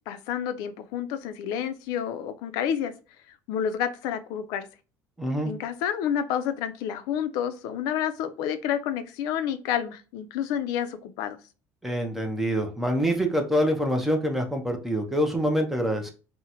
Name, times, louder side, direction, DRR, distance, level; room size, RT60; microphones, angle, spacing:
voice 1, 0.1-2.9 3.3-4.7 5.4-11.4, left 9 dB, 70° left, 10 dB, 0.4 m, -29 dB
voice 2, 5.2-5.5 11.8-16.1, equal, 5° right, 2 dB, 0.5 m, -25 dB
3.8 x 2.0 x 2.8 m, 0.34 s
cardioid pair, 165°, 7 cm